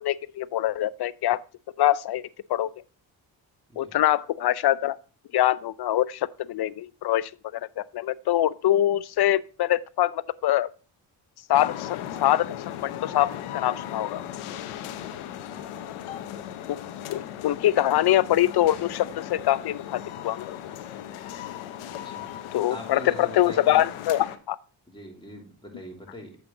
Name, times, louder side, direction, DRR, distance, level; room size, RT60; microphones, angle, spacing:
voice 1, 0.0-1.4 1.8-2.2 2.5-2.7 3.8-4.9 5.3-10.7 11.5-14.2 16.7-16.8 17.1-20.5 22.5-24.6, left 13 dB, 55° left, 0.5 m, -24 dB
sound 1, 11.5-24.4, left 11 dB, 85° left, 0.8 m, -37 dB
voice 2, 22.7-23.8 24.9-26.4, left 1 dB, 10° left, 2.9 m, -42 dB
7.9 x 5.8 x 3.7 m
supercardioid pair, 55°, 49 cm